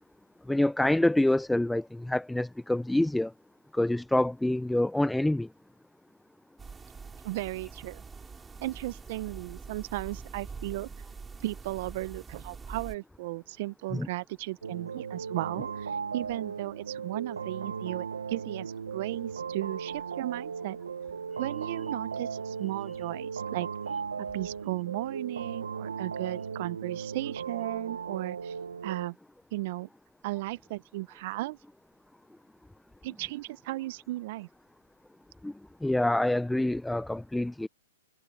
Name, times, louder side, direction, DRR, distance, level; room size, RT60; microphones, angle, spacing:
voice 1, 0.5-3.3 3.7-5.5 13.9-14.1 35.4-35.5 35.8-37.7, left 1 dB, 5° left, 0.6 m, -26 dB
sound 1, 6.6-13.0, right 5 dB, 10° right, 7.1 m, -44 dB
voice 2, 7.2-8.0 8.6-10.9 11.4-15.9 16.1-20.8 21.4-23.7 24.2-28.5 28.8-29.2 29.5-29.9 30.2-31.6 33.0-34.5, right 18 dB, 50° right, 1.1 m, -35 dB
sound 2, 14.6-29.1, right 6 dB, 85° right, 1.0 m, -37 dB
hypercardioid pair, 125°, 0 cm